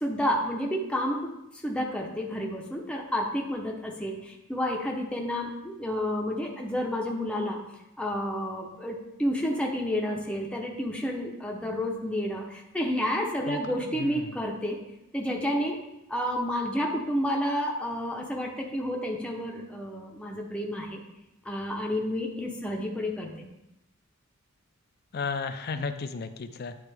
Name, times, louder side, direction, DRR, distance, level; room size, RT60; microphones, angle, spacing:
voice 1, 0.0-7.6 8.0-14.8 15.1-15.8 16.1-21.0 21.4-23.5, equal, 5° left, -1 dB, 0.7 m, -30 dB
voice 2, 13.5-14.4 25.1-26.7, left 4 dB, 45° left, 9 dB, 0.5 m, -34 dB
10.0 x 3.5 x 3.4 m, 0.89 s
head